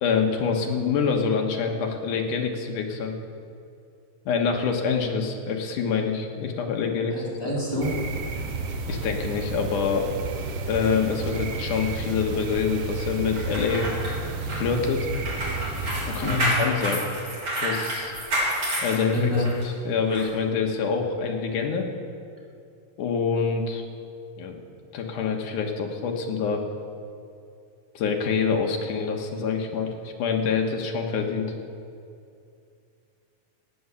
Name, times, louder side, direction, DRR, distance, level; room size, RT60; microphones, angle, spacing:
voice 1, 0.0-3.1 4.3-7.2 7.4-7.5 8.9-10.1 10.7-13.9 14.4-15.1 16.1-17.0 17.6-18.1 18.8-19.3 19.9-21.9 23.0-23.8 24.4-24.6 24.9-26.6 28.0-31.5, left 5 dB, 70° left, 2 dB, 2.6 m, -26 dB
voice 2, 7.1-7.9 16.2-16.5 19.1-19.5, left 2 dB, 5° left, -7 dB, 3.5 m, -26 dB
sound 1, 7.8-16.4, right 3 dB, 70° right, 1.6 m, -32 dB
sound 2, 13.4-19.6 20.1-20.3, right 1 dB, 40° right, 4.2 m, -29 dB
16.5 x 9.5 x 7.1 m, 2.4 s
omnidirectional pair, 3.9 m